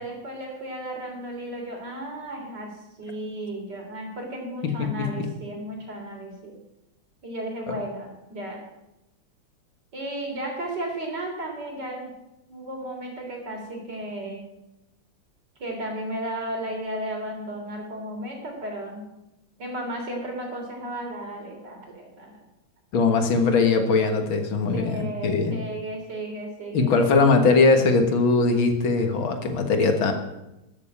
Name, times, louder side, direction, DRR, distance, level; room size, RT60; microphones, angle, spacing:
voice 1, 0.0-6.6 7.2-8.6 9.9-12.1 12.5-14.4 15.6-19.0 19.6-22.4 24.7-27.2, right 1 dB, 50° right, 1 dB, 4.0 m, -34 dB
voice 2, 4.8-5.3 22.9-25.6 26.7-30.1, left 4 dB, 70° left, 5 dB, 2.3 m, -21 dB
13.5 x 7.4 x 8.6 m, 0.92 s
omnidirectional pair, 2.3 m